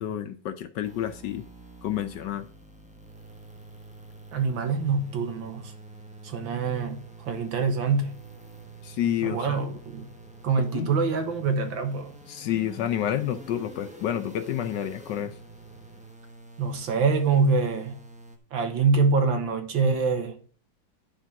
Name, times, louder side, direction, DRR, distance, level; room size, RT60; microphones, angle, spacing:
voice 1, 0.0-1.4 1.8-2.5 8.8-9.6 10.7-10.9 12.3-15.3, left 10 dB, 70° left, 1.2 m, -29 dB
sound 1, 0.8-18.4, right 2 dB, 5° right, 0.6 m, -47 dB
voice 2, 4.3-5.7 6.2-8.2 9.2-10.1 10.4-12.2 16.6-18.0 18.5-20.4, right 4 dB, 70° right, 2.0 m, -25 dB
10.5 x 4.4 x 5.8 m
omnidirectional pair, 2.2 m